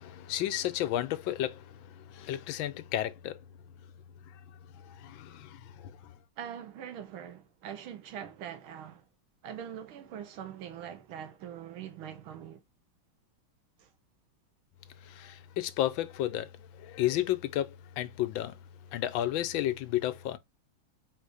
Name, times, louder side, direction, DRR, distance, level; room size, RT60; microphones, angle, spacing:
voice 1, 0.0-3.4 4.8-6.1 15.0-16.5 16.8-18.6 18.9-20.4, left 13 dB, 75° left, 1.3 m, -32 dB
voice 2, 6.4-9.0 9.4-12.6 13.8-13.9, right 9 dB, 80° right, 1.6 m, -43 dB
4.1 x 2.7 x 4.8 m
omnidirectional pair, 2.2 m